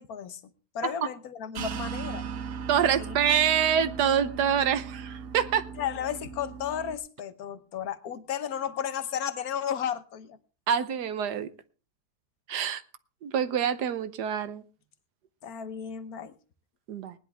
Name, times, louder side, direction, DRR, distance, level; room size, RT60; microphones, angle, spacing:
voice 1, 0.0-2.3 2.8-3.2 5.8-10.4 15.4-16.3, left 9 dB, 65° left, 12 dB, 1.5 m, -34 dB
sound 1, 1.5-6.9, right 6 dB, 60° right, 1.1 m, -38 dB
voice 2, 2.7-5.7 10.7-11.5 12.5-12.8 13.2-14.6 16.9-17.1, right 8 dB, 85° right, 13 dB, 1.5 m, -26 dB
19.5 x 10.5 x 3.4 m, 0.35 s
omnidirectional pair, 1.7 m